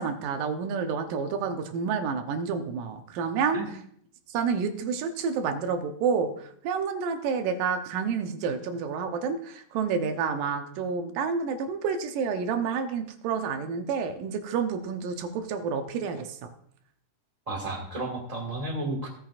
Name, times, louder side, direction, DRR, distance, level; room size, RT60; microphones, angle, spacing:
voice 1, 0.0-3.6 4.3-16.5, right 6 dB, 85° right, 7 dB, 2.5 m, -29 dB
voice 2, 17.5-19.1, right 2 dB, 20° right, 1 dB, 1.1 m, -32 dB
16.5 x 9.0 x 2.4 m, 0.66 s
omnidirectional pair, 3.7 m